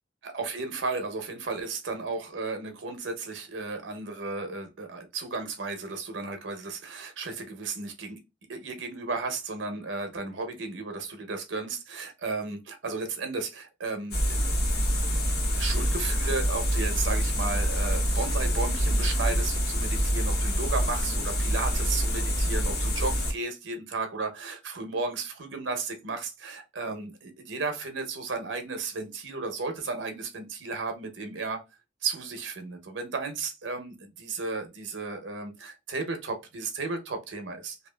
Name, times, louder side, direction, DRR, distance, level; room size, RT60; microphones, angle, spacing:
voice 1, 0.2-8.2 8.5-14.6 15.6-31.6 32.0-37.9, right 3 dB, 85° right, 0.7 m, -34 dB
sound 1, 14.1-23.3, equal, 55° left, 0.9 m, -26 dB
2.8 x 2.4 x 2.2 m
head